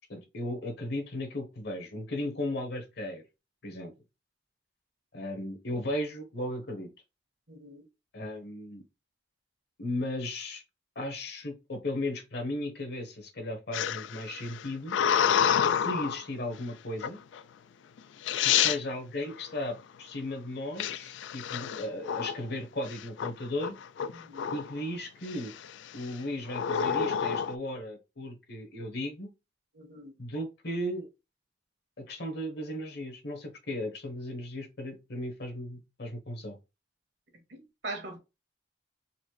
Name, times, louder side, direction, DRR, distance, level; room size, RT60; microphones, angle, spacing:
voice 1, 0.1-3.2 3.6-3.9 5.1-6.9 8.1-8.8 9.8-10.6 10.9-15.0 15.7-17.2 18.4-23.7 24.5-25.5 25.9-29.3 30.2-31.1 32.0-36.6, left 1 dB, 60° left, 1.1 m, -36 dB
voice 2, 7.5-7.8 24.2-24.4 29.7-30.1 37.5-38.2, right 2 dB, 70° right, 1.4 m, -41 dB
sound 1, 13.7-16.2 17.0-17.4 18.0-18.1 18.3-18.8 20.8-22.5 22.9-23.3 23.6-24.8 25.3-25.7 26.5-27.5, left 8 dB, 80° left, 0.3 m, -28 dB
4.1 x 2.6 x 3.1 m
head